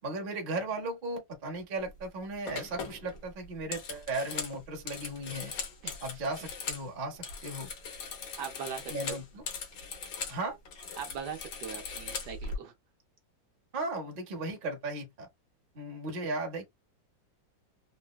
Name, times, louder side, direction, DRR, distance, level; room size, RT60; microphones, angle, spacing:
voice 1, 0.0-5.5 6.0-7.7 8.9-9.4 10.3-10.6 13.7-15.3 15.7-16.7, right 2 dB, 45° right, 0.7 m, -36 dB
sound 1, 1.8-2.1 2.5-6.9 7.1-10.4 10.7-12.6, left 5 dB, 70° left, 1.5 m, -40 dB
voice 2, 8.4-9.2 11.0-12.7, right 7 dB, 70° right, 1.2 m, -40 dB
3.9 x 2.1 x 2.2 m
omnidirectional pair, 2.1 m